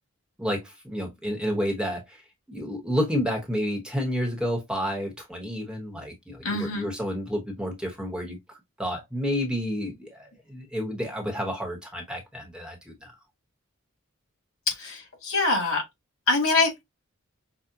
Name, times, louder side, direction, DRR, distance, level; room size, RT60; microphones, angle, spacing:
voice 1, 0.4-2.2 2.5-13.1, equal, 5° right, 1.0 m, -30 dB
voice 2, 6.4-6.9 14.7-15.8 16.3-16.8, left 3 dB, 85° left, 1.9 m, -24 dB
5.6 x 2.2 x 2.5 m
head